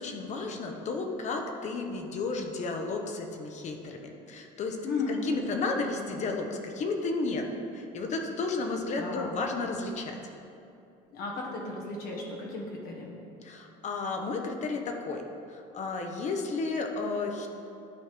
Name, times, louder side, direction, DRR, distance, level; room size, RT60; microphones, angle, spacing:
voice 1, 0.0-4.0 4.3-4.8 5.1-7.5 7.7-10.2 13.4-15.2 15.5-17.5, left 3 dB, 45° left, 3 dB, 0.9 m, -32 dB
voice 2, 4.8-5.3 9.0-9.4 11.1-13.1, left 3 dB, 65° left, -1 dB, 1.2 m, -35 dB
11.5 x 4.3 x 3.4 m, 2.6 s
cardioid pair, 115°, 17 cm